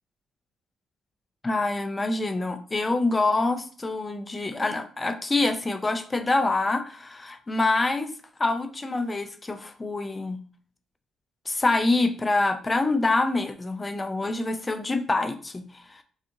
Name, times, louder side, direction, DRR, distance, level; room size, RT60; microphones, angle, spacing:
voice 1, 1.4-8.1 8.4-10.4 11.5-16.0, left 2 dB, 25° left, 8 dB, 0.4 m, -26 dB
2.5 x 2.4 x 2.8 m, 0.43 s
supercardioid pair, 75°, 0 cm